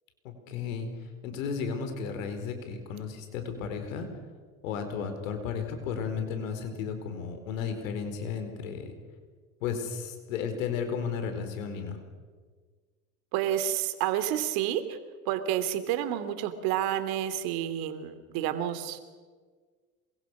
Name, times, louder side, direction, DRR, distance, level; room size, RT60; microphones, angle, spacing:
voice 1, 0.2-0.9 1.2-4.1 4.6-8.9 9.6-12.0, left 6 dB, 75° left, 7 dB, 4.5 m, -34 dB
voice 2, 13.3-15.0 15.3-19.0, right 11 dB, 60° right, 10 dB, 2.9 m, -29 dB
27.5 x 23.0 x 6.3 m, 1.5 s
hypercardioid pair, 80°, 40 cm